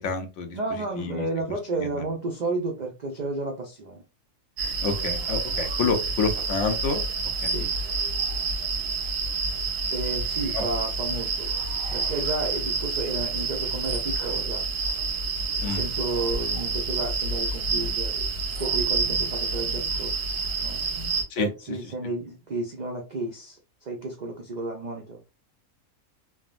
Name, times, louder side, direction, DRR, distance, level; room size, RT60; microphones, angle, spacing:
voice 1, 0.0-1.3 1.8-2.0 4.8-7.0 7.4-7.7 10.5-10.6 15.6-15.8 21.3-21.8, left 4 dB, 65° left, 0.8 m, -29 dB
voice 2, 0.5-4.0 7.5-7.7 9.9-11.5 11.9-14.6 15.6-18.3 18.6-20.1 20.6-20.8 21.4-25.2, right 2 dB, 70° right, 0.4 m, -32 dB
sound 1, 4.6-21.2, right 4 dB, 55° right, 0.8 m, -28 dB
3.4 x 2.2 x 2.4 m
omnidirectional pair, 1.5 m